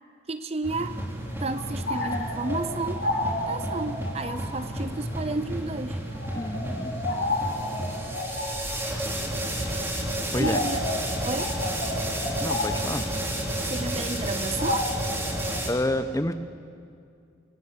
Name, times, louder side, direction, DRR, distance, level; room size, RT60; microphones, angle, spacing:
voice 1, 0.3-1.0 1.4-6.0 10.4-10.8 11.2-11.6 13.7-14.9, right 3 dB, 35° right, 11 dB, 0.6 m, -32 dB
sound 1, 0.6-15.7, right 1 dB, 15° right, 3.4 m, -31 dB
sound 2, 1.2-15.6, left 2 dB, 90° left, 6.1 m, -33 dB
voice 2, 6.3-7.0 10.3-10.6 12.4-13.1 15.7-16.3, left 1 dB, 15° left, 11 dB, 0.9 m, -28 dB
25.0 x 25.0 x 7.4 m, 2.4 s
head